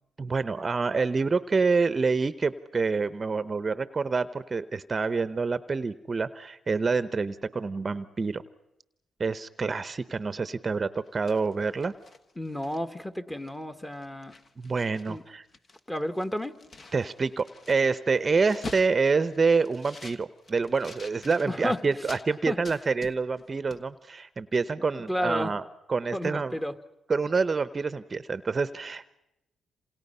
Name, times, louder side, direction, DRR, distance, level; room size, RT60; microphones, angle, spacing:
voice 1, 0.2-8.4 9.2-11.9 14.6-15.4 16.9-25.6 25.9-26.5 27.1-29.1, right 4 dB, 35° right, 14 dB, 0.8 m, -27 dB
sound 1, 11.1-13.1 13.5-13.6 13.9-15.2 15.4-22.3 22.6-23.5 23.7-23.8, left 3 dB, 45° left, 1.4 m, -46 dB
voice 2, 12.4-14.3 15.1-15.2 15.9-16.5 21.5-21.8 22.5-22.6 24.9-25.5 26.1-26.7, left 1 dB, 10° left, 9 dB, 1.5 m, -31 dB
27.5 x 27.0 x 5.6 m, 0.86 s
cardioid pair, 90°, 0 cm